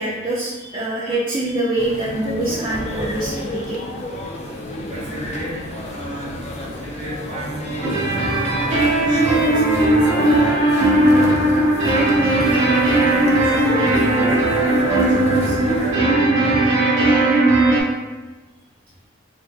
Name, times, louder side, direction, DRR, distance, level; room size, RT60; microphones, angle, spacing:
voice 1, 0.0-3.8 7.6-7.8, right 1 dB, 25° right, -8 dB, 0.5 m, -24 dB
sound 1, 1.8-15.9, left 1 dB, 35° left, 0.4 m, -32 dB
voice 2, 4.9-10.6 11.1-11.3 11.8-16.3, right 1 dB, 40° right, -7 dB, 1.2 m, -31 dB
sound 2, 7.8-17.8, right 2 dB, 65° right, 0.9 m, -17 dB
3.4 x 2.1 x 3.5 m, 1.2 s
head